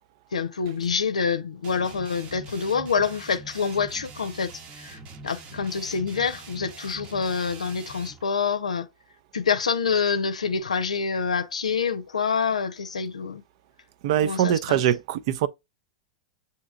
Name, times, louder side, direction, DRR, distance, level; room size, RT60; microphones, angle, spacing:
voice 1, 0.3-8.9 9.3-13.4 14.2-14.8, left 5 dB, 80° left, 0.6 m, -27 dB
sound 1, 1.6-8.2, right 3 dB, 35° right, 0.8 m, -44 dB
voice 2, 14.0-15.5, right 11 dB, 55° right, 0.4 m, -23 dB
8.1 x 2.8 x 2.3 m
figure-of-eight pair, 95°, 4 cm